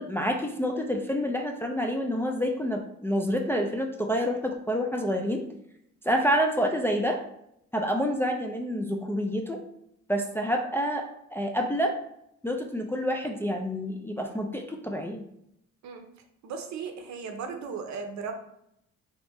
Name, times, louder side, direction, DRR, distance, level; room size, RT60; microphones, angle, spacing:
voice 1, 0.0-5.4 6.0-7.2 7.7-9.6 10.1-11.0 11.3-11.9 12.4-15.2, equal, 10° left, 2 dB, 0.3 m, -28 dB
voice 2, 16.4-18.3, right 5 dB, 65° right, 5 dB, 0.7 m, -36 dB
3.4 x 2.7 x 3.0 m, 0.76 s
cardioid pair, 90°, 30 cm